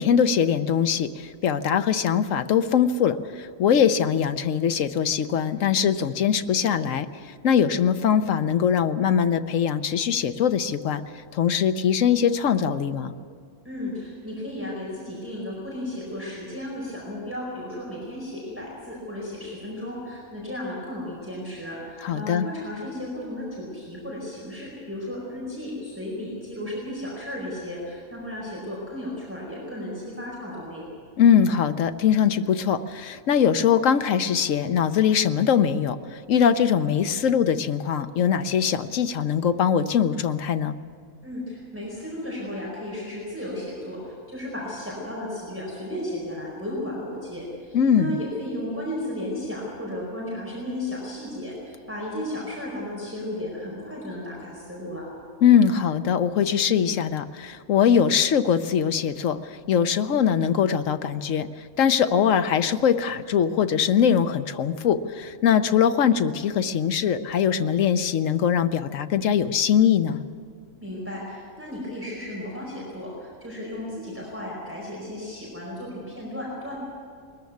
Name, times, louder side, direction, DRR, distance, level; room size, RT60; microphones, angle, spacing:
voice 1, 0.0-7.1 7.4-11.0 11.3-13.1 22.0-22.5 31.2-40.8 47.7-48.1 55.4-59.4 59.7-61.5 61.8-70.2, left 8 dB, 75° left, 10 dB, 1.1 m, -22 dB
voice 2, 13.6-30.8 41.2-55.1 70.8-76.8, left 1 dB, 10° right, -5 dB, 4.7 m, -34 dB
21.0 x 14.0 x 9.4 m, 2.1 s
omnidirectional pair, 1.4 m